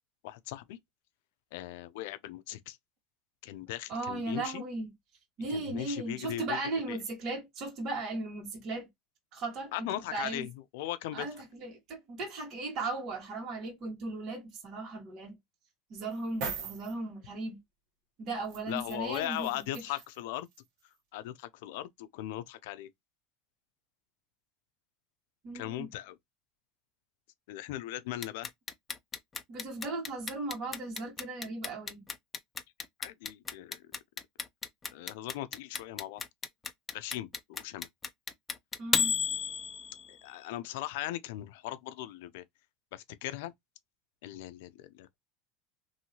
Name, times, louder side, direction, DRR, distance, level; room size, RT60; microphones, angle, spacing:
voice 1, 0.2-0.8 1.5-2.8 3.4-4.6 5.5-6.6 6.9-7.0 9.7-11.3 18.7-20.5 21.1-22.9 25.5-26.2 27.5-28.5 33.0-33.9 34.9-36.2 36.9-37.9 40.1-42.4 42.9-43.5 44.2-45.2, left 14 dB, 80° left, 0.4 m, -39 dB
voice 2, 3.9-4.9 5.4-8.9 9.3-9.9 10.1-10.5 11.1-15.4 15.9-17.6 18.2-19.6 25.4-25.9 29.5-32.0 38.8-39.1, right 2 dB, 50° right, 1.4 m, -37 dB
sound 1, 16.1-16.9 18.5-20.2 20.5-20.6, right 5 dB, 65° right, 1.2 m, -40 dB
Clock, 28.2-40.2, left 6 dB, 20° left, 0.5 m, -33 dB
2.8 x 2.7 x 2.7 m
supercardioid pair, 120°, 0 cm